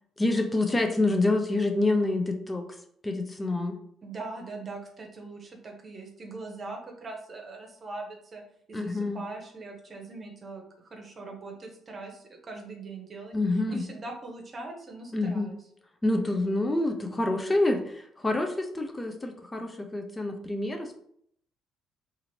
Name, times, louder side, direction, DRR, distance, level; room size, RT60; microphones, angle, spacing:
voice 1, 0.2-2.7 3.0-3.8 8.7-9.2 13.3-13.8 15.1-15.5 16.0-21.0, left 2 dB, 20° left, 5 dB, 0.5 m, -27 dB
voice 2, 4.0-8.4 8.7-15.6, right 3 dB, 40° right, 2 dB, 0.9 m, -41 dB
2.8 x 2.6 x 2.8 m, 0.69 s
hypercardioid pair, 50°, 0 cm